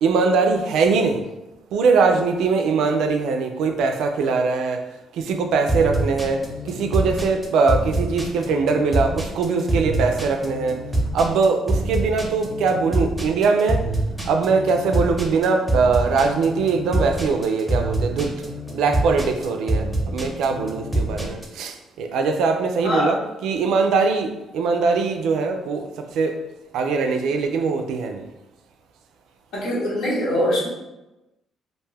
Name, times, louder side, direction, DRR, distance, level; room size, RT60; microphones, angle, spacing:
voice 1, 0.0-1.2 1.7-4.8 5.1-10.8 11.1-13.8 14.2-18.4 18.7-26.3 26.7-28.3, right 4 dB, 85° right, 5 dB, 0.3 m, -21 dB
sound 1, 5.7-21.6, right 2 dB, 10° right, 0.6 m, -25 dB
voice 2, 22.8-23.2 29.5-30.7, left 1 dB, 80° left, -5 dB, 1.0 m, -22 dB
2.5 x 2.2 x 3.3 m, 0.99 s
cardioid pair, 90°, 0 cm